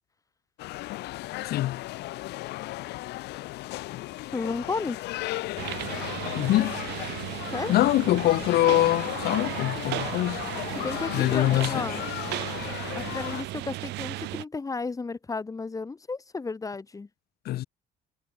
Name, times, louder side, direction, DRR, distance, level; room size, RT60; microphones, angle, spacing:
sound 1, 0.6-13.4, left 18 dB, 85° left, 2.0 m, -36 dB
voice 1, 1.4-1.8 3.9-4.0 6.3-6.8 7.7-10.4 11.1-12.0 17.4-17.6, left 15 dB, 65° left, 0.8 m, -24 dB
voice 2, 4.3-5.0 7.5-7.7 10.8-12.0 12.9-17.1, left 4 dB, 20° left, 1.5 m, -33 dB
sound 2, 5.6-14.4, right 19 dB, 85° right, 5.7 m, -35 dB
cardioid pair, 110°, 17 cm